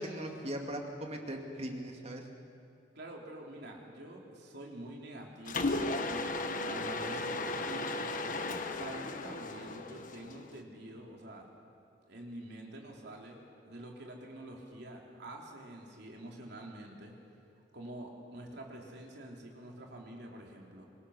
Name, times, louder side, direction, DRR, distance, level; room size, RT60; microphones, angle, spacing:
voice 1, 0.0-2.2, equal, 35° right, 2 dB, 2.5 m, -39 dB
voice 2, 3.0-7.4 7.7-7.9 8.7-11.6 12.1-17.2 17.7-20.9, right 1 dB, 60° right, 0 dB, 3.6 m, -47 dB
Mechanisms, 5.5-10.6, left 2 dB, 45° left, 1.3 m, -35 dB
25.5 x 22.0 x 6.6 m, 2.5 s
head